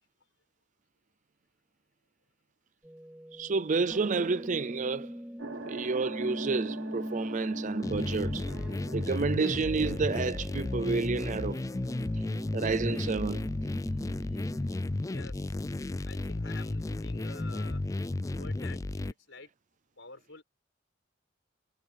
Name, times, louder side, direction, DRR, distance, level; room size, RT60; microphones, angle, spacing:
sound 1, 2.8-14.8, equal, 5° right, 6.3 m, -41 dB
voice 1, 3.3-5.1 5.7-8.5 8.9-11.6 12.5-13.5, right 4 dB, 40° right, 0.5 m, -30 dB
sound 2, 5.4-14.1, right 3 dB, 75° right, 2.1 m, -46 dB
sound 3, 7.8-19.1, left 2 dB, 15° left, 0.3 m, -33 dB
voice 2, 15.0-15.6 16.1-17.8 18.3-18.8 19.1-19.5 20.0-20.4, left 4 dB, 75° left, 5.7 m, -49 dB
head